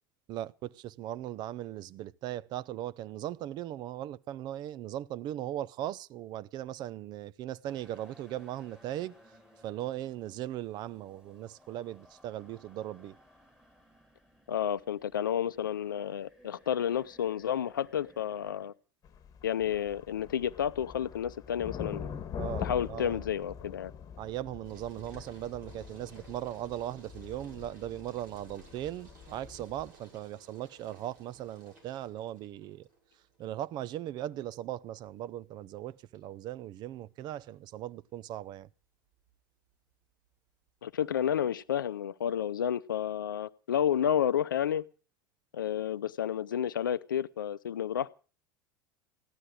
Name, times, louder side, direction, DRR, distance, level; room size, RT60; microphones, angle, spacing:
voice 1, 0.3-9.2 9.6-13.2 22.4-23.2 24.2-32.9 33.4-38.7, right 13 dB, 40° right, 0.7 m, -38 dB
sound 1, 7.7-18.7, equal, 5° right, 3.6 m, -60 dB
voice 2, 14.5-18.7 19.4-22.1 22.6-23.9 40.8-44.8 45.5-48.1, left 9 dB, 70° left, 0.7 m, -31 dB
sound 2, 19.0-29.9, left 7 dB, 35° left, 1.4 m, -44 dB
sound 3, 24.6-42.1, right 3 dB, 60° right, 6.5 m, -60 dB
15.5 x 12.0 x 6.4 m
figure-of-eight pair, 75°, 11 cm